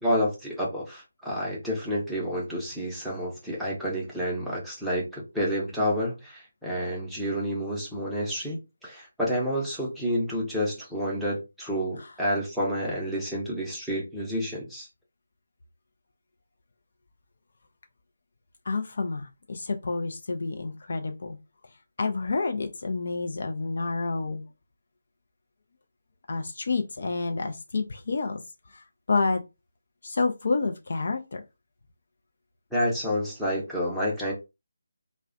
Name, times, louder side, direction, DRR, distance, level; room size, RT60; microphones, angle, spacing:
voice 1, 0.0-14.9 32.7-34.3, equal, ahead, 0.6 m, -29 dB
voice 2, 18.7-21.4 22.0-24.4 26.3-28.4 28.7-29.4 30.0-31.4, left 3 dB, 50° left, 0.4 m, -29 dB
2.3 x 2.1 x 2.5 m
figure-of-eight pair, 150°, 0 cm